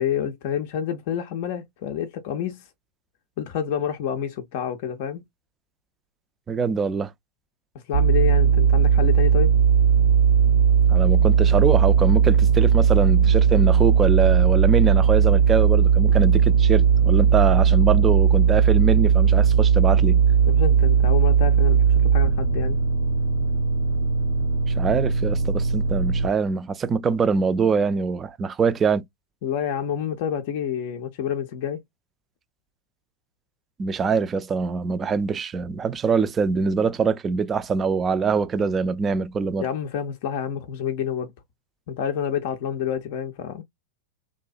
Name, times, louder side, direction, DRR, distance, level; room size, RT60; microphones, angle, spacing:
voice 1, 0.0-2.6 3.4-5.2 7.7-9.5 20.4-22.8 29.4-31.8 39.6-41.3 41.9-43.6, left 8 dB, 50° left, 0.5 m, -28 dB
voice 2, 6.5-7.1 10.9-20.2 24.8-29.0 33.8-39.7, right 5 dB, 20° right, 0.3 m, -23 dB
sound 1, 7.9-26.3, right 7 dB, 90° right, 0.8 m, -18 dB
2.6 x 2.1 x 2.4 m
figure-of-eight pair, 90°, 0 cm